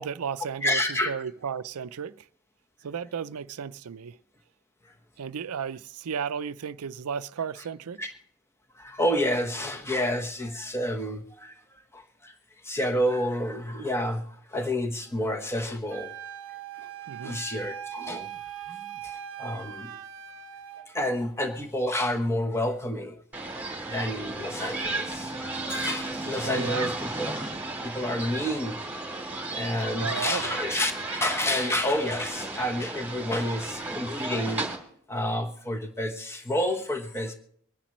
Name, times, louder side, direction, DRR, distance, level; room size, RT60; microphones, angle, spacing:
voice 1, 0.0-2.3 2.8-4.2 5.2-8.0 17.1-17.4 26.4-26.9 30.0-30.6, right 7 dB, 90° right, 0.5 m, -34 dB
voice 2, 0.6-1.1 4.8-4.9 8.0-8.1 8.7-11.5 11.9-12.3 12.6-16.1 16.8-16.9 17.2-18.3 18.7-20.0 20.9-23.2 23.9-25.4 25.7-27.3 27.8-28.8 29.5-34.7 35.1-37.3, left 1 dB, 10° left, 1.1 m, -29 dB
Wind instrument woodwind instrument, 15.9-20.9, right 10 dB, 60° right, 0.9 m, -40 dB
sound 1, 23.3-34.8, right 2 dB, 10° right, 2.8 m, -34 dB
24.5 x 10.0 x 3.1 m
head